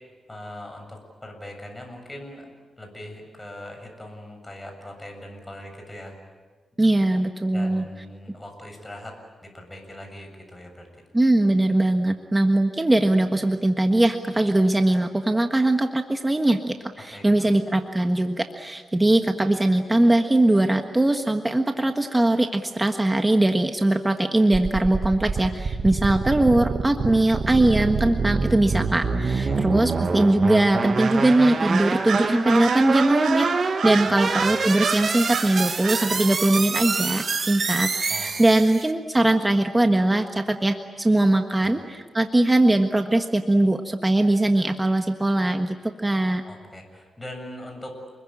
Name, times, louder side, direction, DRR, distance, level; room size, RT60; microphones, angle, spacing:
voice 1, 0.3-6.2 7.5-9.2 9.4-10.9 17.1-17.5 26.1-26.2 29.4-29.6 34.1-34.5 38.1-38.3 41.6-41.7 46.4-47.9, left 1 dB, 15° left, 3 dB, 7.3 m, -41 dB
voice 2, 6.8-7.8 11.1-33.5 33.8-45.8 46.0-46.4, right 1 dB, 15° right, 5 dB, 1.5 m, -21 dB
sound 1, 24.5-38.9, right 4 dB, 50° right, 1.6 m, -26 dB
Bird vocalization bird call bird song, 31.0-31.4 31.7-35.5 35.8-36.1, right 6 dB, 80° right, 5.0 m, -31 dB
29.0 x 21.5 x 8.9 m, 1.4 s
cardioid pair, 95°, 0 cm